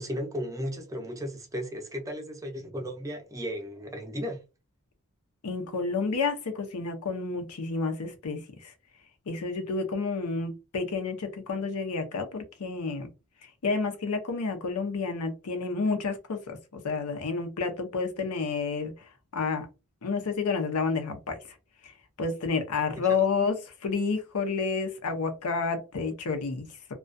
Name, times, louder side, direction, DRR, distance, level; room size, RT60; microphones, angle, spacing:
voice 1, 0.0-4.4 23.1-23.2, equal, 15° right, 0.5 m, -35 dB
voice 2, 5.4-8.7 9.3-13.1 13.6-16.6 16.8-18.9 19.3-19.7 20.0-21.4 21.8-21.9 22.2-26.9, left 4 dB, 85° left, 0.6 m, -30 dB
2.2 x 2.2 x 2.5 m
head